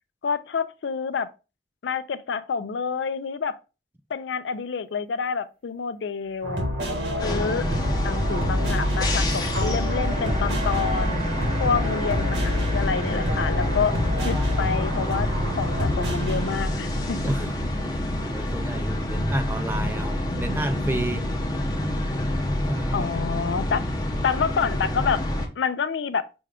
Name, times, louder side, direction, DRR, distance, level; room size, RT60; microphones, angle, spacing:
voice 1, 0.2-1.3 1.8-3.6 4.1-6.7 7.2-7.7 8.0-11.3 11.6-14.0 14.2-15.3 15.6-17.2 22.9-25.2 25.6-26.3, left 6 dB, 90° left, 0.4 m, -28 dB
sound 1, 6.2-6.9 9.3-20.7, right 2 dB, 35° right, 0.9 m, -41 dB
sound 2, 6.4-16.6, left 1 dB, 80° right, 1.3 m, -27 dB
sound 3, 7.2-25.5, left 1 dB, 20° left, 0.7 m, -28 dB
voice 2, 17.2-17.5 18.2-21.3 22.7-23.1, right 1 dB, 10° right, 0.3 m, -31 dB
6.1 x 2.3 x 3.5 m
head